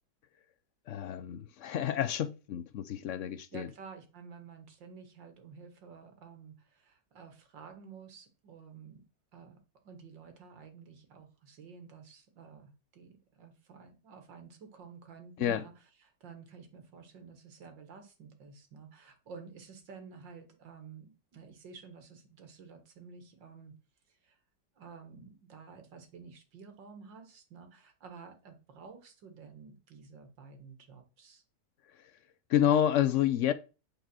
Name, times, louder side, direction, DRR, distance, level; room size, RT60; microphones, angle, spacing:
voice 1, 0.9-3.7 15.4-15.6 32.5-33.5, left 10 dB, 70° left, 0.7 m, -29 dB
voice 2, 3.5-9.0 9.3-9.6 9.8-23.7 24.1-24.4 24.8-31.4, right 5 dB, 80° right, 2.3 m, -51 dB
8.8 x 4.9 x 6.1 m
omnidirectional pair, 1.9 m